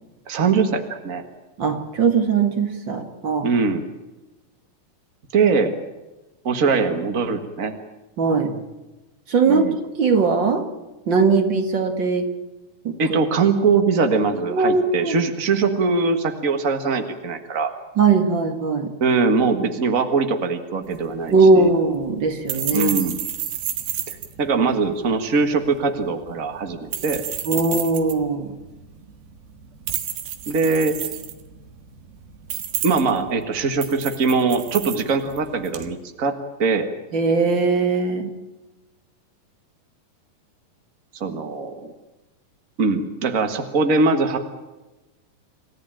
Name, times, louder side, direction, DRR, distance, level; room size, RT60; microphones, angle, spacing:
voice 1, 0.3-1.2 3.4-3.8 5.3-5.8 6.4-7.7 9.5-9.7 13.0-17.7 19.0-21.7 22.7-23.2 24.1-27.2 30.5-31.0 32.8-36.9 41.2-41.9 42.8-44.5, right 4 dB, 65° right, 7 dB, 0.8 m, -22 dB
voice 2, 1.6-3.5 8.2-8.6 9.3-9.6 10.0-10.7 11.1-12.3 12.8-13.2 14.5-15.2 18.0-18.9 21.3-22.9 27.4-28.5 37.1-38.3, right 4 dB, 40° right, 6 dB, 2.1 m, -19 dB
sound 1, 20.8-35.9, right 10 dB, 90° right, 3.5 m, -32 dB
28.0 x 15.0 x 8.9 m, 1.1 s
omnidirectional pair, 4.2 m